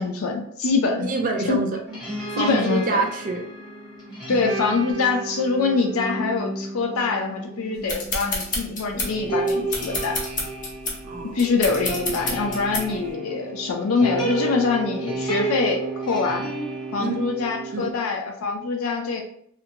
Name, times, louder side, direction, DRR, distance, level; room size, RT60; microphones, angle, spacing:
voice 1, 0.0-1.1 1.5-1.6 2.4-3.0 4.3-10.2 11.3-16.5 16.9-19.2, left 4 dB, 85° left, 3 dB, 0.4 m, -24 dB
voice 2, 1.0-1.7 2.3-3.5 11.0-11.4 17.0-17.3 17.7-17.9, right 3 dB, 40° right, 2 dB, 0.4 m, -26 dB
sound 1, 1.9-17.9, right 2 dB, 20° left, 0.9 m, -32 dB
sound 2, 7.9-13.1, left 2 dB, 40° left, 0.6 m, -29 dB
2.4 x 2.2 x 2.7 m, 0.69 s
head